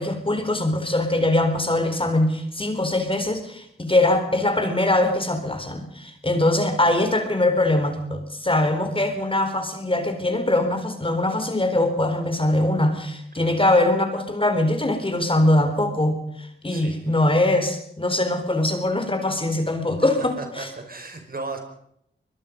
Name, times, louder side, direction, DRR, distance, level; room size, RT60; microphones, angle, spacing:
voice 1, 0.0-20.7, left 1 dB, 25° left, 7 dB, 4.1 m, -22 dB
voice 2, 16.7-17.0 20.0-21.6, right 3 dB, 45° right, 5 dB, 4.9 m, -36 dB
24.0 x 20.5 x 5.4 m, 0.73 s
cardioid pair, 55°, 20 cm